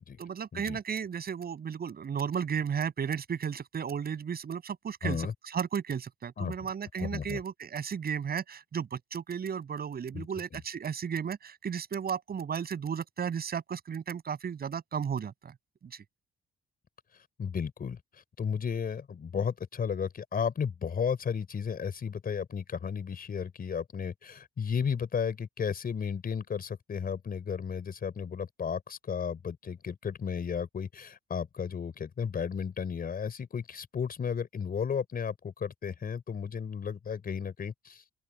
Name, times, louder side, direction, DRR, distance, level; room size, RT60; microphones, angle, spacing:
voice 1, 0.2-15.5 15.9-16.0, right 7 dB, 50° right, 7.7 m, -34 dB
voice 2, 5.0-5.3 6.4-6.5 7.0-7.4 10.1-10.3 17.4-38.0, left 7 dB, 45° left, 4.6 m, -34 dB
open air
cardioid pair, 90°, 20 cm